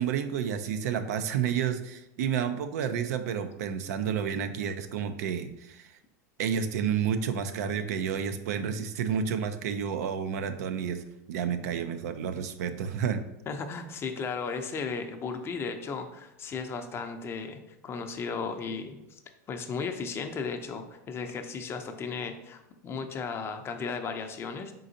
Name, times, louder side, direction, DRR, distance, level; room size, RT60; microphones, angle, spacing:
voice 1, 0.0-5.9 6.4-11.0 11.3-13.2, right 7 dB, 80° right, 9 dB, 0.4 m, -30 dB
voice 2, 13.5-19.2 19.5-24.7, left 5 dB, 30° left, 6 dB, 0.5 m, -35 dB
4.1 x 3.8 x 2.7 m, 0.88 s
supercardioid pair, 115°, 9 cm